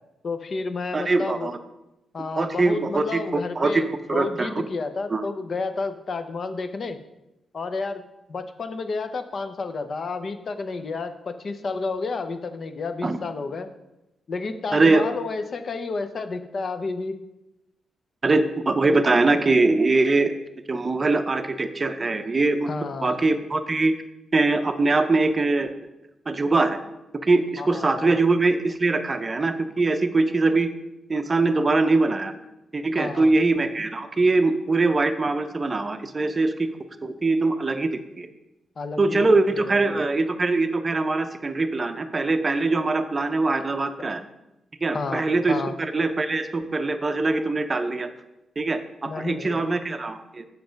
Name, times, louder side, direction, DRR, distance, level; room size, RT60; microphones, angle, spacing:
voice 1, 0.2-1.5 2.1-7.0 7.5-8.0 8.3-13.7 14.3-17.2 22.7-23.2 27.6-28.2 32.9-33.3 38.8-39.2 39.5-40.0 44.9-45.7 49.0-49.6, left 4 dB, 45° left, 9 dB, 0.7 m, -31 dB
voice 2, 0.9-1.6 2.4-3.2 3.6-3.8 4.1-4.5 5.1-5.2 13.0-13.2 14.7-15.1 18.2-20.3 20.7-22.7 23.0-23.9 24.3-25.7 26.3-26.8 27.2-30.7 31.1-32.3 32.7-36.5 37.0-38.3 39.0-44.2 44.8-48.1 48.6-50.4, right 3 dB, 25° right, 7 dB, 0.6 m, -22 dB
7.6 x 5.9 x 5.1 m, 0.93 s
cardioid pair, 130°, 0 cm